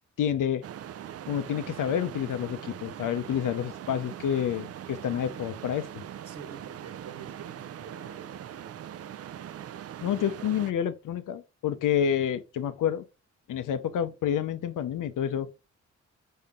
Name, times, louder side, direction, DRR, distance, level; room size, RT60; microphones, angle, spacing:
voice 1, 0.2-0.6 1.3-6.0 10.0-13.0 13.5-15.5, left 9 dB, 90° left, 0.7 m, -29 dB
sound 1, 0.6-10.7, right 10 dB, 50° right, 0.4 m, -41 dB
voice 2, 6.2-8.7, right 6 dB, 85° right, 1.3 m, -47 dB
5.6 x 5.6 x 3.6 m
cardioid pair, 80°, 30 cm